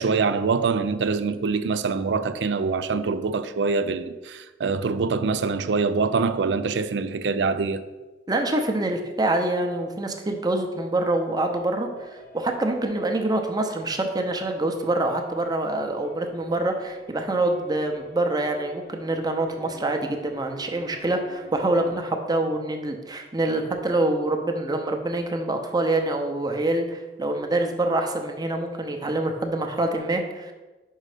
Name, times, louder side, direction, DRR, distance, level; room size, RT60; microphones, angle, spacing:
voice 1, 0.0-7.8, right 4 dB, 85° right, 0.4 m, -24 dB
voice 2, 8.3-30.5, right 2 dB, 25° right, 0.7 m, -26 dB
sound 1, 11.9-22.0, right 2 dB, 50° left, 0.7 m, -47 dB
5.5 x 5.1 x 4.9 m
head